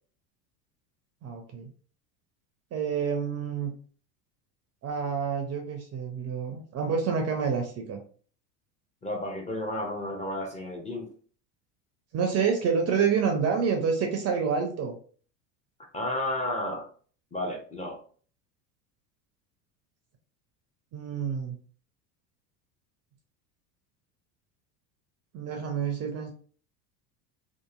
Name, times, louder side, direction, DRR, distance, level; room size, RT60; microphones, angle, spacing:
voice 1, 1.2-1.7 2.7-3.7 4.8-8.0 12.1-15.0 20.9-21.6 25.3-26.3, right 6 dB, 30° right, 0.5 m, -28 dB
voice 2, 9.0-11.1 15.9-16.9 17.3-18.0, left 1 dB, 15° left, 0.6 m, -32 dB
2.8 x 2.5 x 2.4 m
hypercardioid pair, 85°, 49 cm